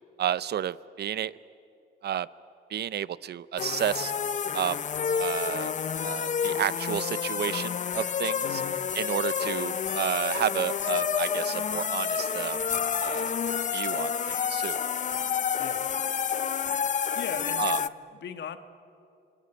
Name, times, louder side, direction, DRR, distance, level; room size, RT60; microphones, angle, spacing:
voice 1, 0.2-1.3 2.0-2.3 2.7-4.1 4.5-4.8 5.2-5.7 6.0-8.6 8.9-12.6 13.0-13.3 13.7-14.8 17.6-17.8, right 10 dB, 55° right, 18 dB, 0.6 m, -31 dB
sound 1, 3.6-17.9, left 7 dB, 40° left, 0.6 m, -29 dB
voice 2, 8.4-8.8 9.4-9.5 15.6-15.8 17.1-18.6, left 7 dB, 65° left, 9 dB, 1.4 m, -39 dB
27.0 x 19.5 x 9.0 m, 2.7 s
cardioid pair, 90°, 20 cm